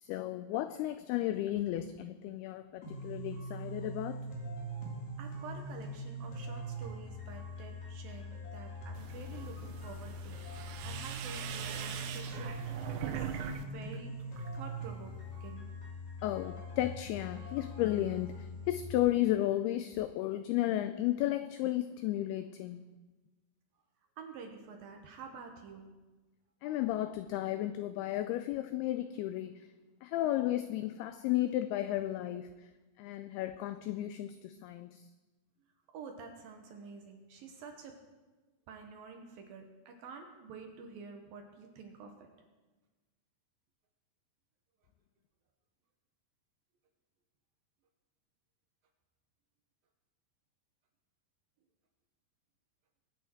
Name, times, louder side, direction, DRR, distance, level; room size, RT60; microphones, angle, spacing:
voice 1, 0.0-4.3 16.2-22.8 26.6-29.7 30.0-32.6 33.0-35.1, left 14 dB, 90° left, 2.2 m, -33 dB
sound 1, 2.8-18.8, right 1 dB, 45° left, 3.4 m, -42 dB
voice 2, 5.2-10.4 10.8-12.7 13.0-15.8 24.2-26.0 35.9-38.0 38.7-42.3, right 5 dB, 70° right, 2.5 m, -49 dB
sound 2, 8.9-13.6 13.9-14.6, right 9 dB, 90° right, 3.1 m, -42 dB
22.5 x 9.1 x 4.6 m
omnidirectional pair, 5.1 m